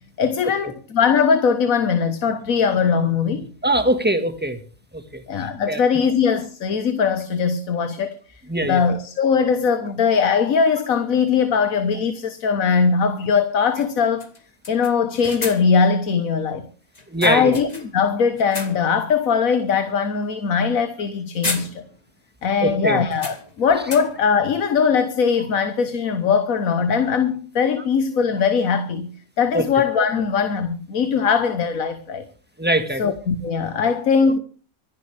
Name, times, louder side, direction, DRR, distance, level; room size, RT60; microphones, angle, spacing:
voice 1, 0.2-3.5 5.3-8.1 8.6-14.3 14.7-16.7 17.2-21.8 22.4-29.1 29.4-32.2 33.0-34.4, left 6 dB, 70° left, 1.6 m, -20 dB
voice 2, 3.6-4.6 5.7-5.8 8.5-8.8 17.1-17.6 22.6-23.0 29.5-29.6 32.6-33.0, right 1 dB, 5° right, 1.6 m, -21 dB
sound 1, 10.6-10.7 12.8-12.9 13.2-13.3 13.8-13.9 14.2-15.9 16.9-18.1 18.4-19.0 19.5-19.7 20.9-21.1 21.4-22.2 22.4-22.5 23.1-24.4, left 2 dB, 25° left, 2.2 m, -34 dB
25.5 x 10.5 x 3.4 m
omnidirectional pair, 1.5 m